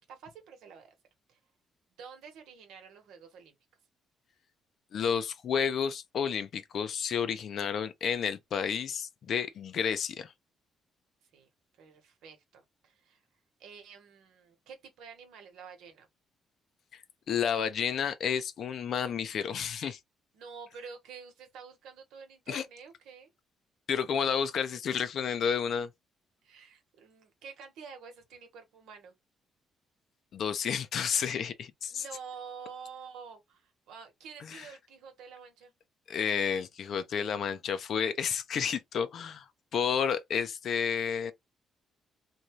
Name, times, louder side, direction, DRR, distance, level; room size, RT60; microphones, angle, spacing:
voice 1, 0.1-0.9 1.3-1.4 2.0-3.5 11.3-11.5 11.8-13.2 13.6-16.1 20.3-23.3 26.4-29.1 31.9-35.7, right 6 dB, 85° right, 1.0 m, -48 dB
voice 2, 4.9-10.3 16.9-17.0 17.3-20.0 22.5-22.6 23.9-25.9 30.3-32.0 34.5-34.7 36.1-41.3, left 7 dB, 65° left, 0.5 m, -31 dB
2.7 x 2.3 x 2.9 m
cardioid pair, 90°, 0 cm